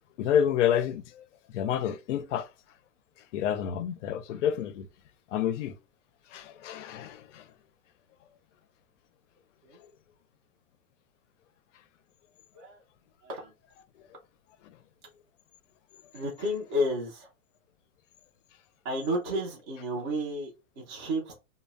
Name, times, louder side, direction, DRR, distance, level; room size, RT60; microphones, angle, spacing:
voice 1, 0.2-1.2 1.5-2.5 3.3-4.9 5.3-5.8 6.3-7.4, left 9 dB, 60° left, 0.5 m, -28 dB
voice 2, 13.2-13.5 16.1-17.3 18.8-21.3, equal, 20° right, 0.4 m, -32 dB
2.1 x 2.0 x 3.4 m
hypercardioid pair, 160°, 42 cm